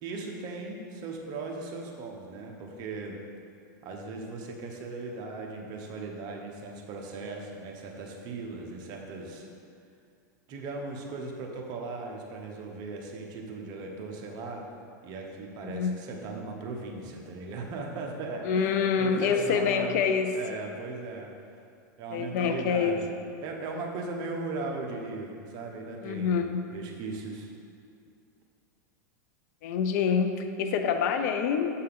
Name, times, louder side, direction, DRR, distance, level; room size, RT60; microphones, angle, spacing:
voice 1, 0.0-3.2 3.8-9.5 10.5-14.6 15.0-19.9 20.3-21.3 22.0-26.4 26.7-27.5, right 3 dB, 45° right, 0 dB, 1.0 m, -38 dB
voice 2, 15.6-15.9 18.4-20.3 22.1-23.0 26.0-26.6 29.6-31.7, left 6 dB, 65° left, 7 dB, 0.5 m, -26 dB
7.6 x 4.4 x 3.6 m, 2.4 s
hypercardioid pair, 120°, 10 cm